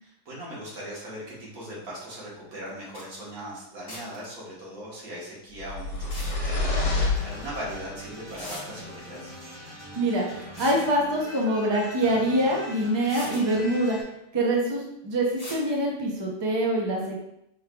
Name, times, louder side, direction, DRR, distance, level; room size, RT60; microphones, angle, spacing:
voice 1, 0.0-9.3, equal, 90° right, -6 dB, 1.9 m, -39 dB
sound 1, 2.7-2.8 2.9-3.1 3.9-4.3 6.0-6.3 7.7-7.8 8.4-8.6 10.4-10.9 12.4-12.5 13.0-13.4 15.4-15.6, left 1 dB, 30° left, 1.1 m, -40 dB
sound 2, 5.6-8.0, left 3 dB, 60° left, 1.2 m, -28 dB
sound 3, 7.1-14.0, equal, 70° right, 1.9 m, -43 dB
voice 2, 10.0-14.0 14.3-17.2, right 1 dB, 25° right, -2 dB, 0.6 m, -25 dB
5.5 x 3.2 x 2.3 m, 0.81 s
omnidirectional pair, 1.5 m